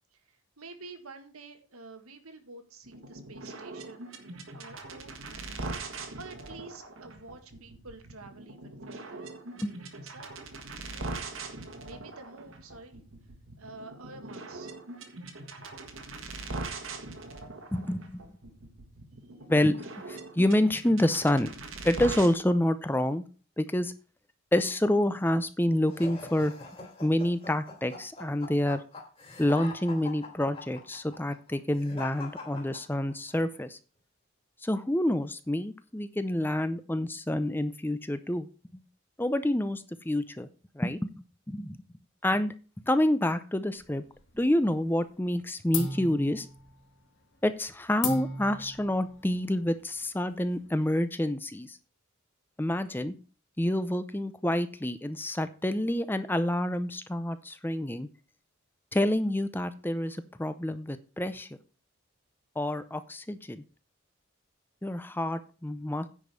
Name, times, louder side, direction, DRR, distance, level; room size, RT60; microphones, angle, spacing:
voice 1, 0.0-5.7 6.2-10.5 10.8-11.2 11.8-13.0 13.6-14.7, right 3 dB, 90° right, 7 dB, 1.8 m, -49 dB
sound 1, 2.8-22.3, right 3 dB, 70° right, 1.7 m, -41 dB
voice 2, 17.7-18.2 19.5-19.8 20.1-21.5 21.8-23.2 23.6-23.9 24.5-26.5 27.0-28.8 29.4-33.8 34.6-38.5 39.2-40.5 40.7-41.1 41.5-41.8 42.2-42.5 42.8-44.0 44.3-46.5 47.4-51.8 52.6-53.2 53.6-58.1 58.9-61.5 62.6-63.6 64.8-66.1, left 1 dB, 10° left, 11 dB, 0.6 m, -28 dB
sound 2, 25.9-33.3, left 3 dB, 25° left, 2.8 m, -43 dB
sound 3, 43.8-44.7 45.0-45.4 45.7-50.9, left 3 dB, 60° left, 2.1 m, -38 dB
9.9 x 5.3 x 6.8 m, 0.36 s
head